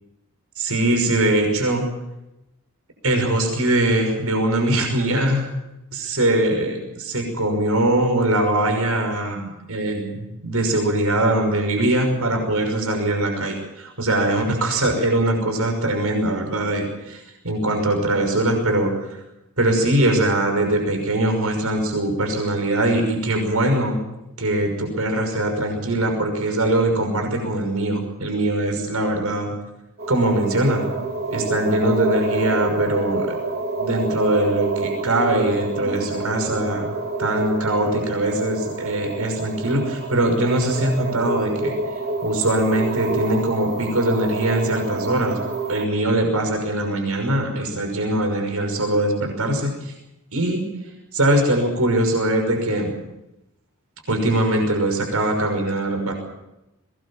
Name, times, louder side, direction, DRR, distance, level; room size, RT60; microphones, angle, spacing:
voice 1, 0.6-1.9 3.0-5.5 5.9-19.2 19.6-24.0 24.4-29.5 30.1-30.9 31.3-33.4 33.8-41.8 42.2-45.4 45.7-49.9 50.3-50.7 51.1-52.9 54.1-56.1, right 1 dB, 85° right, 3 dB, 5.9 m, -22 dB
sound 1, 30.0-45.9, right 3 dB, 45° right, 3.6 m, -28 dB
22.0 x 20.0 x 7.4 m, 0.91 s
head